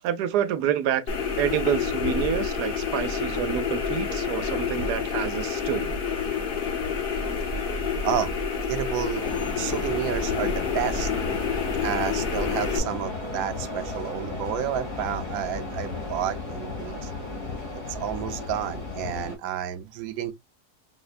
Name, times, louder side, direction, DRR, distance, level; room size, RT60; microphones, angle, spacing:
voice 1, 0.0-1.0 1.4-6.0, right 10 dB, 90° right, 1.2 m, -28 dB
sound 1, 1.1-12.8, left 6 dB, 45° left, 0.8 m, -28 dB
voice 2, 8.0-8.4 8.7-9.3 9.6-11.1 11.8-17.1 17.7-20.3, right 10 dB, 70° right, 1.0 m, -30 dB
sound 2, 9.2-19.4, left 3 dB, 90° left, 2.5 m, -34 dB
5.6 x 2.1 x 2.4 m
omnidirectional pair, 1.7 m